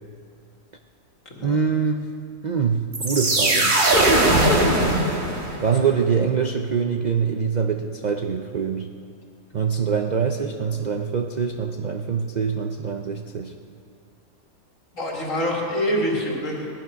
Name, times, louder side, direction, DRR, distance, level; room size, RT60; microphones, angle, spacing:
voice 1, 1.4-2.1 2.4-3.8 4.8-5.1 5.6-8.9 9.5-13.5, right 6 dB, 55° right, 5 dB, 0.4 m, -24 dB
sound 1, 2.9-5.7, right 1 dB, 35° right, 1.7 m, -19 dB
voice 2, 14.9-16.7, equal, 60° left, -2 dB, 2.6 m, -26 dB
18.5 x 10.5 x 5.7 m, 2.4 s
omnidirectional pair, 1.5 m